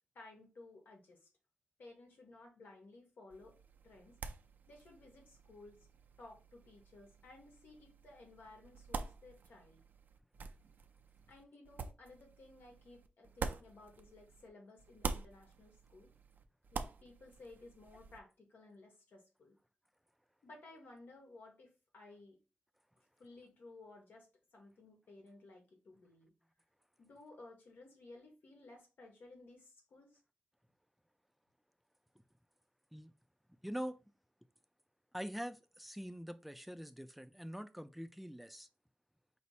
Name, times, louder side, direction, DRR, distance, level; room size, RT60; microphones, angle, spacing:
voice 1, 0.1-1.3 1.8-3.6 3.8-4.2 4.7-5.8 6.2-9.8 11.3-16.1 16.7-19.5 20.4-22.4 23.2-26.3 27.0-30.2, left 2 dB, 80° left, 1.3 m, -57 dB
sound 1, 3.3-14.5 14.8-18.2, right 4 dB, 70° right, 0.5 m, -47 dB
voice 2, 33.6-34.0 35.1-38.7, equal, ahead, 0.4 m, -44 dB
5.4 x 2.0 x 4.2 m
wide cardioid pair, 120°, 3 cm